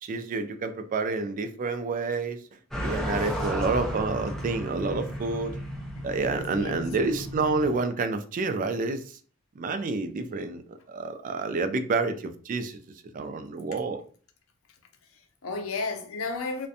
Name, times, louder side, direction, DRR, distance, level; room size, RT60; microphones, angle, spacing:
voice 1, 0.0-2.4 2.8-5.6 6.0-9.2 9.6-12.8 13.1-14.0, right 3 dB, 40° right, 0.3 m, -29 dB
sound 1, 2.7-7.8, equal, ahead, 0.6 m, -34 dB
voice 2, 6.0-6.9 14.7-14.8 15.1-16.7, left 3 dB, 90° left, 0.5 m, -34 dB
2.4 x 2.1 x 2.6 m
head